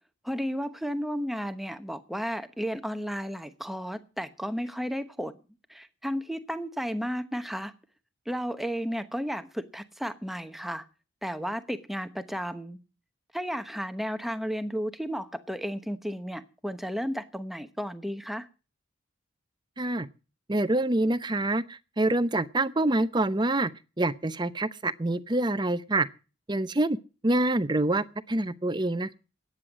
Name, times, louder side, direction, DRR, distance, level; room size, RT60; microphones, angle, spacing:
voice 1, 0.2-5.3 5.7-7.7 8.3-10.9 11.2-12.8 13.3-18.5, equal, ahead, 1.0 m, -33 dB
voice 2, 19.8-20.1 20.5-23.7 24.0-26.1 26.5-27.0 27.2-29.2, right 2 dB, 20° right, 0.7 m, -26 dB
14.0 x 9.7 x 7.4 m
head